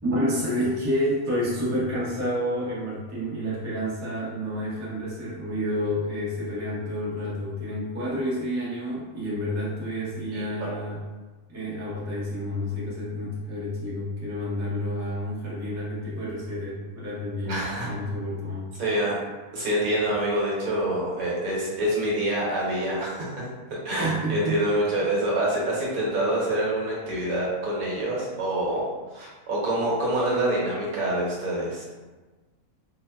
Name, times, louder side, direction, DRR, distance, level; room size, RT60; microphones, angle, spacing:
voice 1, 0.0-11.0 11.5-17.6 17.8-18.7 24.0-24.6 25.0-25.1, equal, 20° right, -8 dB, 0.4 m, -29 dB
voice 2, 10.3-10.7 17.4-17.9 18.8-19.2 19.5-23.4 23.8-31.8, right 1 dB, 70° right, -5 dB, 1.3 m, -26 dB
4.1 x 2.1 x 2.2 m, 1.3 s
omnidirectional pair, 1.6 m